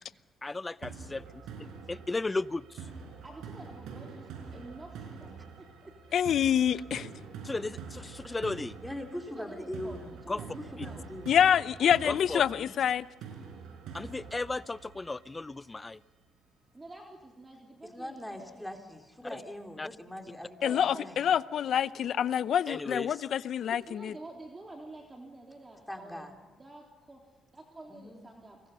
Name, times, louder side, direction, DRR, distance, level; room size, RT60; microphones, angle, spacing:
voice 1, 0.4-2.9 7.4-8.8 10.3-10.4 10.8-10.9 12.0-12.4 13.9-16.0 19.3-19.4 19.8-19.9 22.7-23.2, left 3 dB, 20° left, 0.7 m, -35 dB
sound 1, 0.8-15.8, right 5 dB, 85° right, 5.0 m, -46 dB
voice 2, 3.2-5.9 9.2-11.2 15.7-15.8 16.7-19.0 20.6-21.1 23.7-27.2 27.5-28.6, right 2 dB, 25° right, 3.6 m, -49 dB
voice 3, 6.1-7.1 11.3-13.1 20.6-24.1, left 9 dB, 65° left, 0.7 m, -26 dB
voice 4, 8.8-10.1 10.7-11.3 12.6-12.8 17.8-21.2 25.9-26.3 27.9-28.3, left 1 dB, 5° left, 3.6 m, -41 dB
30.0 x 23.0 x 5.6 m
cardioid pair, 90°, 0 cm